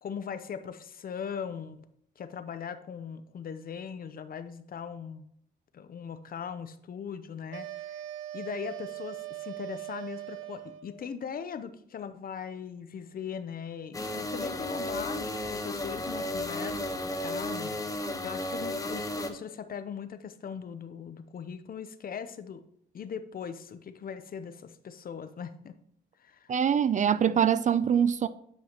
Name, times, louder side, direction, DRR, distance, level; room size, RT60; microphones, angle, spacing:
voice 1, 0.0-1.8 2.2-5.2 5.7-8.0 8.3-22.6 22.9-25.8 26.2-26.5, left 7 dB, 45° left, 0.7 m, -40 dB
sound 1, 7.5-11.0, right 14 dB, 90° right, 0.6 m, -40 dB
sound 2, 13.9-19.3, left 1 dB, 15° left, 1.0 m, -33 dB
voice 2, 26.5-28.3, right 8 dB, 40° right, 0.4 m, -24 dB
9.4 x 5.6 x 3.0 m
cardioid pair, 90°, 20 cm